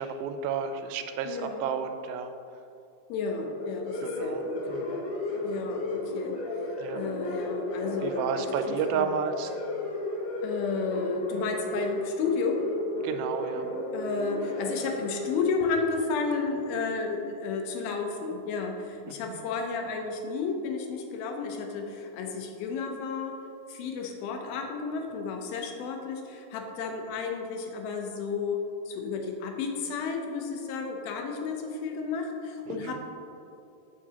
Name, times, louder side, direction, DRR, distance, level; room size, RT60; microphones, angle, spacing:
voice 1, 0.0-2.3 4.0-5.0 6.8-7.1 8.0-9.5 13.0-13.7 19.1-19.3 32.7-33.0, right 7 dB, 90° right, 8 dB, 2.4 m, -32 dB
voice 2, 1.3-1.6 3.1-4.6 5.4-9.1 10.4-12.7 13.9-23.4 23.7-33.0, left 5 dB, 90° left, 3 dB, 2.6 m, -32 dB
sound 1, 3.4-17.1, left 1 dB, 70° left, 3.1 m, -34 dB
7.3 x 7.0 x 2.8 m, 2.7 s
omnidirectional pair, 4.1 m